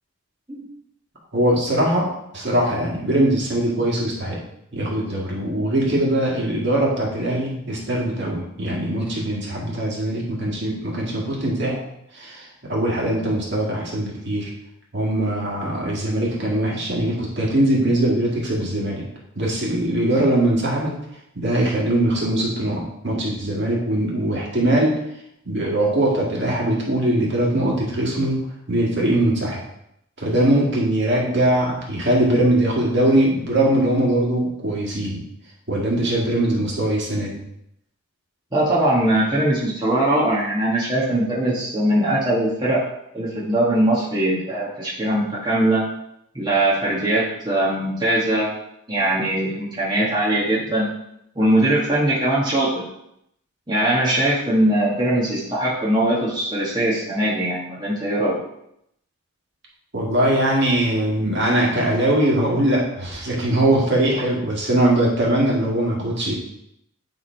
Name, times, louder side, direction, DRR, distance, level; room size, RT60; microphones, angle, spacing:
voice 1, 1.3-4.4 4.7-11.8 12.1-14.5 14.9-19.0 19.4-20.9 21.4-24.9 25.4-29.6 30.2-35.2 35.7-37.4 59.9-66.3, right 1 dB, 50° right, -3 dB, 2.0 m, -21 dB
voice 2, 38.5-42.8 43.1-45.8 46.3-48.5 48.9-50.9 51.3-52.7 53.7-58.4, right 1 dB, 20° right, -7 dB, 1.5 m, -21 dB
9.6 x 3.7 x 4.5 m, 0.78 s
head